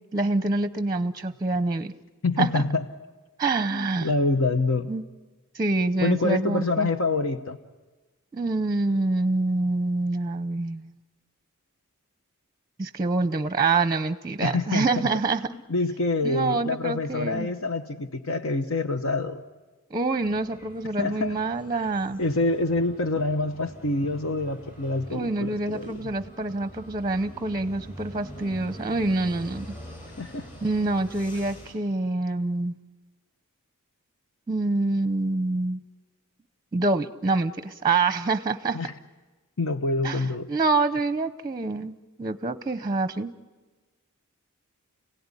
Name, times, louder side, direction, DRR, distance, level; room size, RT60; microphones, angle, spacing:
voice 1, 0.1-1.9 2.4-2.6 3.4-4.1 4.9-5.0 5.5-6.9 8.3-10.9 12.8-15.4 16.2-17.5 19.9-22.2 25.1-29.7 30.6-32.8 34.5-35.8 36.7-38.8 40.0-43.3, right 3 dB, 20° right, 12 dB, 0.7 m, -26 dB
voice 2, 2.2-2.8 3.7-4.9 6.0-7.6 14.4-14.8 15.7-19.4 21.0-21.4 21.7-21.8 22.2-25.9 30.2-30.5 38.7-38.9 39.6-40.5, left 2 dB, 65° left, 9 dB, 1.0 m, -26 dB
sound 1, 20.2-31.7, equal, 40° left, 6.7 m, -44 dB
30.0 x 17.5 x 9.8 m, 1.3 s
head